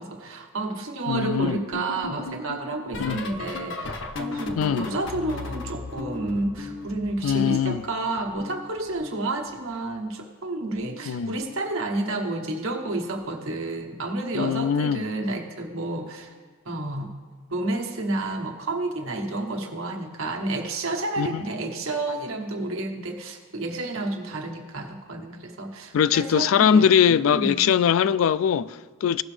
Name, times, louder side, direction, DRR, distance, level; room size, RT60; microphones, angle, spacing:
voice 1, 0.0-16.3 16.6-17.1 17.5-27.7, right 2 dB, 85° right, 1.2 m, -30 dB
voice 2, 1.1-1.6 3.0-3.2 4.6-4.9 7.2-7.8 11.1-11.3 14.3-15.0 21.2-21.4 25.9-29.2, left 8 dB, 80° left, 0.3 m, -21 dB
sound 1, 1.1-7.9 8.2-9.8 10.7-11.1 11.4-11.7 13.2-13.5 13.9-14.1 15.7-15.8, left 3 dB, 60° left, 0.7 m, -37 dB
16.5 x 6.1 x 3.3 m
head